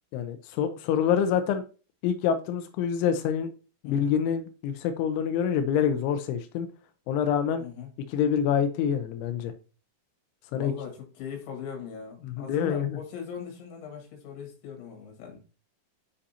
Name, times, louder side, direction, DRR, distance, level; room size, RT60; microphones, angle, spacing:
voice 1, 0.1-1.6 2.0-3.5 3.8-6.7 7.1-7.6 8.1-9.5 10.5-10.7 12.2-13.0, left 8 dB, 85° left, 2.8 m, -26 dB
voice 2, 7.6-7.9 10.5-15.4, left 7 dB, 65° left, 4.1 m, -39 dB
9.8 x 5.1 x 2.8 m
omnidirectional pair, 6.0 m